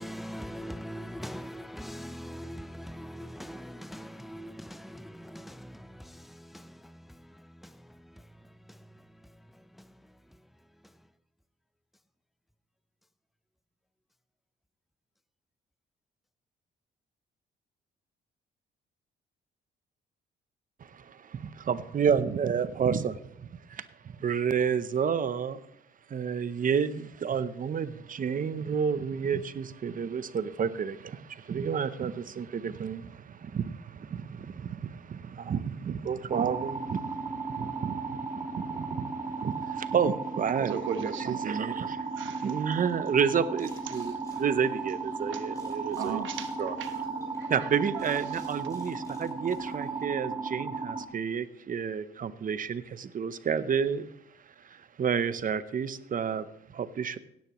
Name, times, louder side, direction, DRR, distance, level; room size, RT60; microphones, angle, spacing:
voice 1, 0.0-10.4 10.8-10.9, equal, ahead, 0.5 m, -43 dB
voice 2, 20.8-25.7 26.1-46.2 46.6-46.8 47.5-54.1 54.6-57.2, right 7 dB, 45° right, 0.7 m, -30 dB
sound 1, 36.3-51.0, right 4 dB, 20° right, 1.6 m, -35 dB
voice 3, 40.6-41.3 42.2-42.4 45.3-45.4 46.0-47.7 48.1-48.2, right 8 dB, 75° right, 1.1 m, -37 dB
sound 2, 43.6-45.2 45.5-50.2, left 1 dB, 15° left, 5.7 m, -56 dB
16.5 x 10.0 x 3.0 m
cardioid pair, 90°, 20 cm